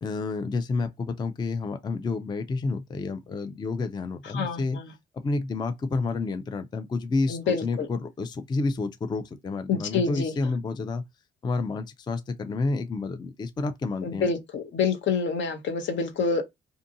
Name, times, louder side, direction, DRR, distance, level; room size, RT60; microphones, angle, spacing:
voice 1, 0.0-4.8 5.1-11.0 11.4-14.3, left 3 dB, 20° left, 0.3 m, -29 dB
voice 2, 4.3-4.9 7.3-7.9 9.7-10.4 14.0-16.4, left 5 dB, 70° left, 0.8 m, -27 dB
2.6 x 2.5 x 2.5 m
cardioid pair, 90°, 20 cm